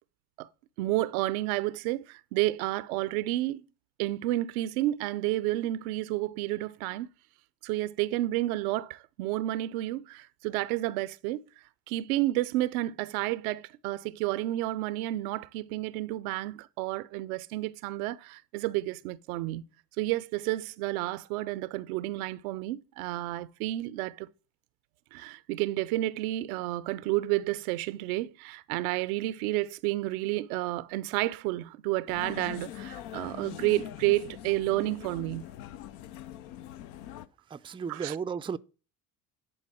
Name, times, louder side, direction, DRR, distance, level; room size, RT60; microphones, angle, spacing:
voice 1, 0.8-3.6 4.0-7.1 7.6-11.4 11.9-19.6 20.0-24.3 25.1-35.4 37.9-38.2, right 16 dB, 80° right, 0.7 m, -31 dB
sound 1, 32.1-37.3, left 12 dB, 70° left, 0.8 m, -43 dB
voice 2, 37.5-38.6, right 6 dB, 10° right, 0.4 m, -34 dB
11.0 x 4.0 x 7.1 m
hypercardioid pair, 65°, 42 cm